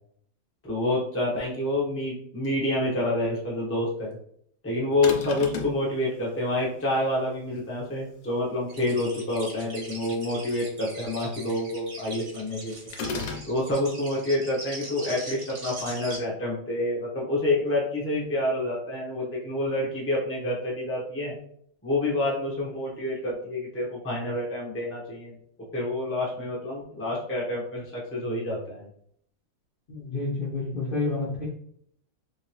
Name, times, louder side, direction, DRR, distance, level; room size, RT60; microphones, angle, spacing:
voice 1, 0.6-4.2 4.6-12.9 13.5-21.3 21.8-25.4 25.7-28.9, left 1 dB, 10° left, -4 dB, 0.6 m, -28 dB
sound 1, 5.0-5.8 12.9-13.5, left 4 dB, 90° left, 1.3 m, -33 dB
sound 2, 8.7-16.2, right 2 dB, 40° right, 0.9 m, -41 dB
voice 2, 29.9-31.5, left 3 dB, 45° left, -7 dB, 0.7 m, -29 dB
3.3 x 2.9 x 3.0 m, 0.66 s
omnidirectional pair, 1.9 m